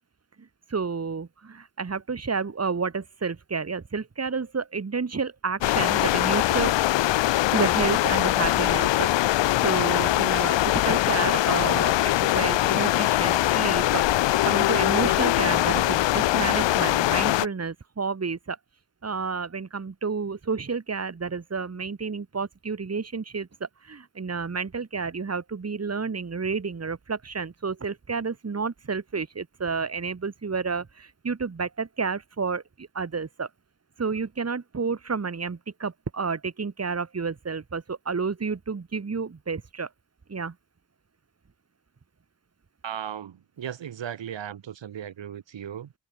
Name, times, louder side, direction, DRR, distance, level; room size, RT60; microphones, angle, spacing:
voice 1, 0.4-6.7 7.5-14.0 14.4-18.6 19.0-33.5 34.0-39.9 40.3-40.5, right 5 dB, 35° right, 2.2 m, -30 dB
sound 1, 5.6-17.5, left 15 dB, 80° left, 0.5 m, -22 dB
voice 2, 42.8-45.9, right 9 dB, 80° right, 1.9 m, -36 dB
wide cardioid pair, 95°, 44 cm